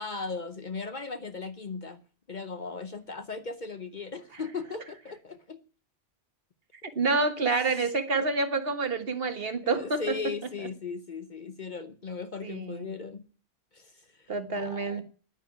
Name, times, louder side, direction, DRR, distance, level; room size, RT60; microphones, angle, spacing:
voice 1, 0.0-2.0 2.3-5.6 8.1-8.3 9.7-13.2 13.7-15.0, left 4 dB, 45° left, 0.9 m, -37 dB
voice 2, 7.0-10.2 12.4-12.9 14.3-15.0, right 3 dB, 55° right, 1.6 m, -28 dB
10.5 x 9.4 x 9.5 m
omnidirectional pair, 1.2 m